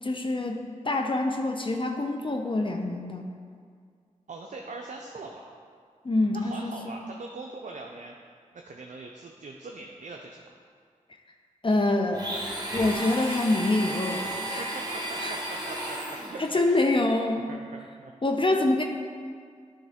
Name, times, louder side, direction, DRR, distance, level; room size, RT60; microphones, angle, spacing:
voice 1, 0.0-3.3 6.0-7.0 11.6-12.2 12.7-14.7 15.2-15.4 16.4-17.5 18.2-18.8, left 2 dB, 40° left, 3 dB, 0.6 m, -26 dB
voice 2, 4.3-5.5 6.3-8.1 8.5-10.4 14.5-16.9 17.3-18.1, right 3 dB, 70° right, 1 dB, 0.5 m, -42 dB
Domestic sounds home sounds, 12.1-16.6, right 1 dB, 30° right, 1.4 m, -34 dB
9.9 x 3.6 x 3.5 m, 2.1 s
cardioid pair, 45°, 13 cm